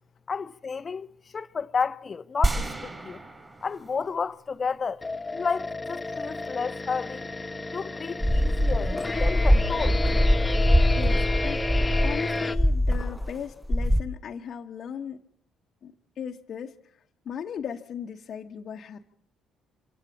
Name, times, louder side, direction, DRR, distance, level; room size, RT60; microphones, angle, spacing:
voice 1, 0.3-3.2 3.6-5.0 5.3-7.2 7.7-10.3, left 5 dB, 40° left, 0.8 m, -32 dB
sound 1, 2.4-4.7, right 2 dB, 25° right, 5.0 m, -30 dB
sound 2, 5.0-12.6, left 2 dB, 20° left, 1.4 m, -31 dB
sound 3, 8.2-13.4 13.6-14.0, equal, ahead, 0.9 m, -22 dB
voice 2, 11.0-11.6 12.0-15.2 15.8-16.9 17.2-19.1, left 8 dB, 55° left, 1.2 m, -37 dB
25.5 x 16.0 x 7.3 m
hypercardioid pair, 50°, 0 cm